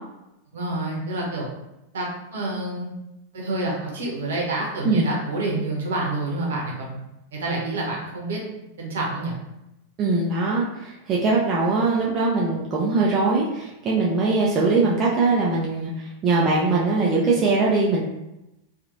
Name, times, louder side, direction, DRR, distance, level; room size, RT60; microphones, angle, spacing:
voice 1, 0.5-1.5 1.9-2.9 3.3-7.0 7.3-8.4 8.8-9.3, right 2 dB, 60° right, -3 dB, 0.9 m, -28 dB
voice 2, 10.0-15.9 16.2-18.0, right 3 dB, 30° right, -5 dB, 0.5 m, -21 dB
2.9 x 2.4 x 2.6 m, 0.91 s
figure-of-eight pair, 90°, 0 cm